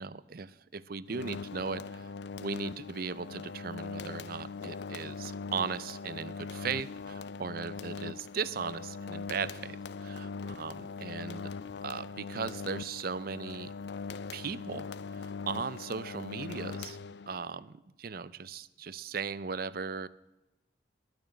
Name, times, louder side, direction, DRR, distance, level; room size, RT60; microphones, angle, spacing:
voice 1, 0.0-2.1 2.4-11.5 11.8-13.7 14.3-17.0 17.3-20.1, right 5 dB, 50° right, 17 dB, 0.5 m, -38 dB
sound 1, 1.1-17.5, left 4 dB, 60° left, 0.4 m, -41 dB
11.5 x 9.0 x 9.9 m, 1.0 s
head